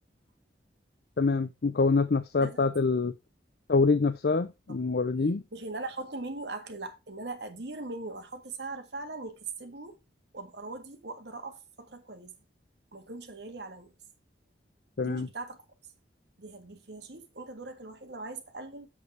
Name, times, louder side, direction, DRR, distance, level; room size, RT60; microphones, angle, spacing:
voice 1, 1.2-3.1 3.7-5.4 15.0-15.3, left 4 dB, 60° left, 0.5 m, -25 dB
voice 2, 5.5-10.0 10.3-12.3 12.9-13.9 15.0-15.6 16.4-18.9, right 3 dB, 70° right, 1.8 m, -40 dB
7.5 x 6.6 x 4.7 m
head